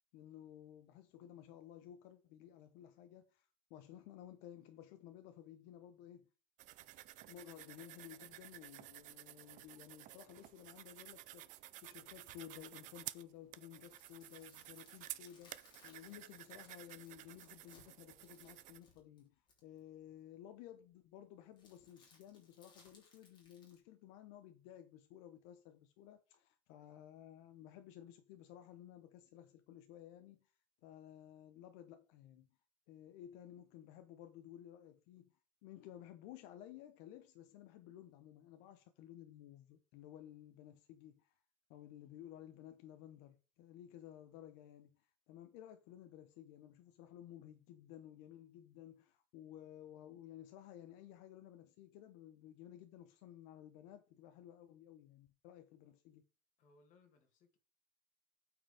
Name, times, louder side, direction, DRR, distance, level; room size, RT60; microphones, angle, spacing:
voice 1, 0.1-6.3 7.3-30.5 30.8-32.5 32.9-35.3 35.6-41.3 41.7-56.2, left 11 dB, 70° left, 0.9 m, -55 dB
sound 1, 6.6-18.8, right 15 dB, 40° right, 0.5 m, -53 dB
sound 2, 13.7-19.8 21.6-23.8, left 3 dB, 25° left, 3.2 m, -67 dB
voice 2, 56.6-57.6, left 3 dB, 40° left, 2.2 m, -68 dB
8.9 x 4.9 x 5.0 m
cardioid pair, 175°, 19 cm